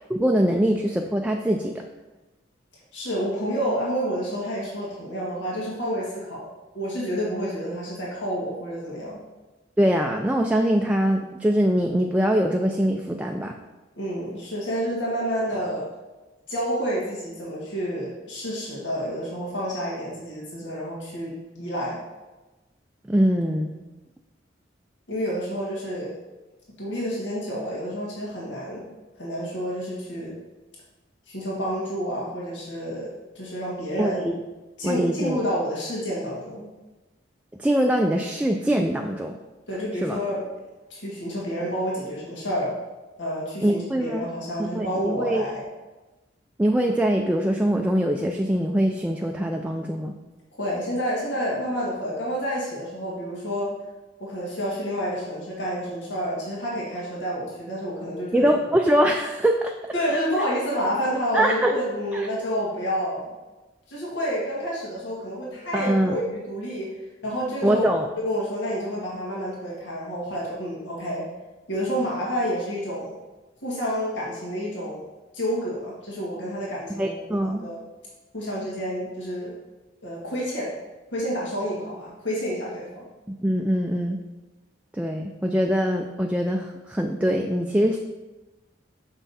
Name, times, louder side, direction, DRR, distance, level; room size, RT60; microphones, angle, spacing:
voice 1, 0.1-1.8 9.8-13.6 23.1-23.7 34.0-34.4 34.8-35.4 37.6-39.4 40.0-40.2 43.6-44.2 44.6-45.4 46.6-50.2 58.3-59.7 60.1-60.2 61.3-61.7 62.1-62.3 65.7-66.2 67.6-68.1 76.9-77.7 83.3-84.2 84.9-88.0, equal, 5° right, 2 dB, 0.3 m, -23 dB
voice 2, 2.9-6.5 6.7-9.2 14.0-15.9 16.5-22.0 25.1-26.1 26.8-30.3 31.3-33.1 33.4-34.2 34.8-36.7 39.7-40.5 40.9-42.7 43.2-45.6 50.6-53.7 54.2-58.5 59.9-63.3 63.9-66.9 67.2-67.8 68.2-71.2 71.7-73.2 73.6-75.1 75.3-77.8 78.3-79.5 80.0-80.7 81.1-83.1, equal, 85° left, -5 dB, 1.9 m, -29 dB
6.2 x 5.7 x 4.1 m, 1.1 s
head